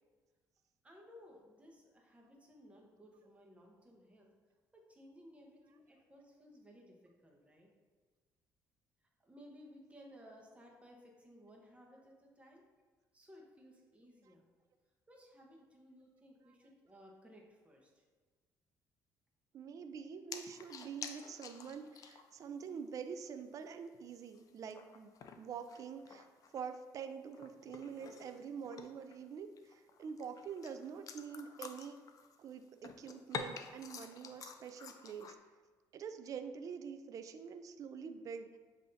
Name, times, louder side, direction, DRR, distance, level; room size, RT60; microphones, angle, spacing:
voice 1, 0.8-4.3 4.7-7.7 9.2-12.6 13.1-14.5 15.1-18.0, equal, 15° right, -1 dB, 0.9 m, -59 dB
voice 2, 19.5-32.0 32.4-35.4 35.9-38.6, right 6 dB, 50° right, 8 dB, 0.3 m, -46 dB
sound 1, 20.3-22.4 22.7-22.8 23.2-23.3 23.9-26.7 27.0-29.2 29.6-32.5 32.8-35.3, left 6 dB, 50° left, 0.4 m, -49 dB
7.4 x 2.7 x 2.7 m, 1.4 s
cardioid pair, 95°, 7 cm